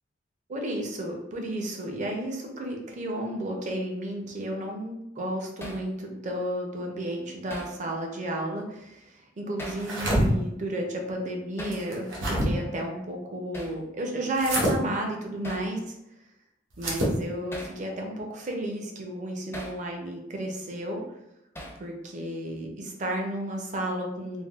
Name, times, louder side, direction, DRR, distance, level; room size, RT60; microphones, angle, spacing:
voice 1, 0.5-15.8 16.8-21.0 21.8-24.4, right 1 dB, 40° right, 1 dB, 0.5 m, -32 dB
Hammer, 5.6-5.9 7.5-7.8 9.6-9.9 11.6-11.8 13.5-13.8 15.4-15.7 17.5-17.8 19.5-19.8 21.5-21.9, equal, 15° left, 0.4 m, -39 dB
sound 1, 9.7-10.3 11.7-12.5 14.4-14.7 16.7-17.2, right 1 dB, 80° right, 0.8 m, -26 dB
3.4 x 2.2 x 2.3 m, 0.85 s
head